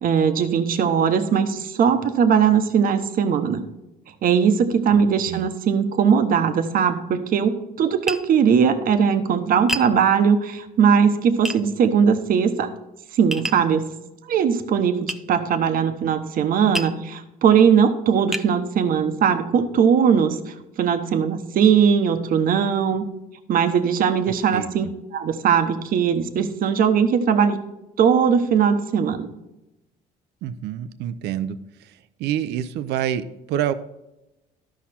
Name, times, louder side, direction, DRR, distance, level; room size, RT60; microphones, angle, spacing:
voice 1, 0.0-3.6 4.2-12.7 13.1-13.9 14.3-23.0 23.5-24.9 25.1-27.6 28.0-29.3, right 7 dB, 55° right, 9 dB, 1.0 m, -19 dB
Tap, 8.1-8.3 9.7-9.9 11.4-11.6 13.3-13.7 15.1-15.2 16.7-17.0 17.7-17.8 18.3-18.5, right 1 dB, ahead, 0.5 m, -28 dB
voice 2, 24.3-24.7 30.4-31.6 32.2-33.7, right 10 dB, 80° right, 12 dB, 0.6 m, -27 dB
13.0 x 5.8 x 4.2 m, 0.94 s
cardioid pair, 110°, 17 cm